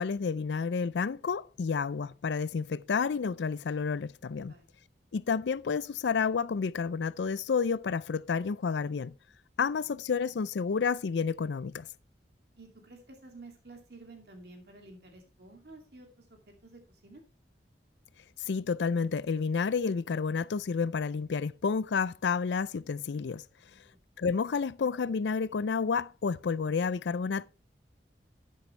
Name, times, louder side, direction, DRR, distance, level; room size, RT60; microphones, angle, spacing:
voice 1, 0.0-4.5 5.1-9.1 9.6-11.9 18.5-23.4 24.2-27.5, left 5 dB, 85° left, 0.4 m, -30 dB
voice 2, 12.6-17.2 23.7-24.0, right 2 dB, 65° right, 2.6 m, -52 dB
13.0 x 8.7 x 3.3 m
head